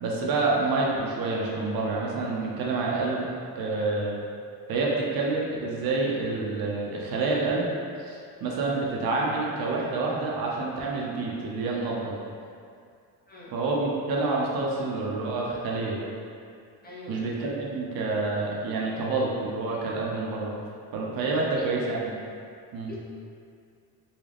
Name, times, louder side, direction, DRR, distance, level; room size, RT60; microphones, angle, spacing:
voice 1, 0.0-3.3 3.5-4.2 4.7-7.7 8.1-12.1 13.5-16.0 17.1-20.6 20.9-22.1 22.7-22.9, right 3 dB, 60° right, -3 dB, 0.8 m, -28 dB
voice 2, 13.3-13.6 16.8-17.2 21.4-21.7 22.9-23.0, left 2 dB, 25° left, -6 dB, 0.9 m, -43 dB
3.8 x 2.3 x 3.4 m, 2.3 s
supercardioid pair, 85°, 40 cm